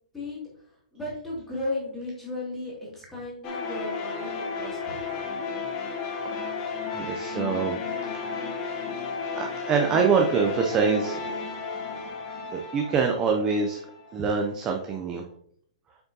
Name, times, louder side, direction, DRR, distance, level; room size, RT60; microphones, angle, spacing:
voice 1, 0.9-5.2, left 2 dB, 5° left, -7 dB, 2.4 m, -35 dB
sound 1, 3.4-14.3, left 5 dB, 25° left, 0.8 m, -33 dB
voice 2, 6.9-7.8 8.1-8.4 9.3-11.3 12.5-13.8 14.1-15.2, right 5 dB, 15° right, 2 dB, 0.4 m, -25 dB
7.5 x 5.8 x 2.8 m, 0.64 s
hypercardioid pair, 175°, 4 cm